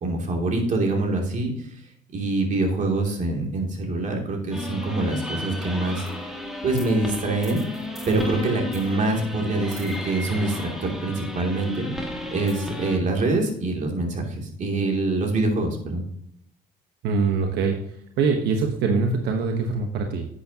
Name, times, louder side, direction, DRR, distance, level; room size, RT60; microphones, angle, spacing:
voice 1, 0.0-1.7 2.1-6.0 6.6-7.6 8.1-16.0, right 2 dB, 50° right, 1 dB, 2.7 m, -25 dB
sound 1, 4.5-13.0, left 1 dB, ahead, 1.8 m, -34 dB
voice 2, 17.0-20.3, right 4 dB, 80° right, 3 dB, 1.1 m, -24 dB
11.0 x 8.6 x 2.9 m, 0.69 s
cardioid pair, 110°, 17 cm